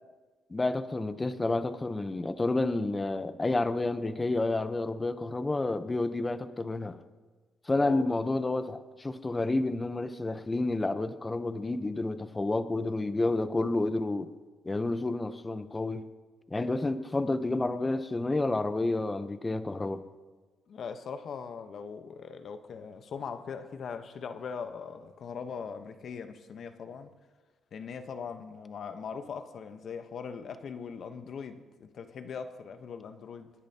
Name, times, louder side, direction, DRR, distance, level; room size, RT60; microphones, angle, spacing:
voice 1, 0.5-7.0 7.7-14.3 14.7-16.0 16.5-20.0, left 2 dB, 20° left, 0.8 m, -30 dB
voice 2, 20.7-27.1 27.7-33.5, left 6 dB, 60° left, 0.9 m, -40 dB
25.5 x 10.0 x 2.8 m
cardioid pair, 90°, 0 cm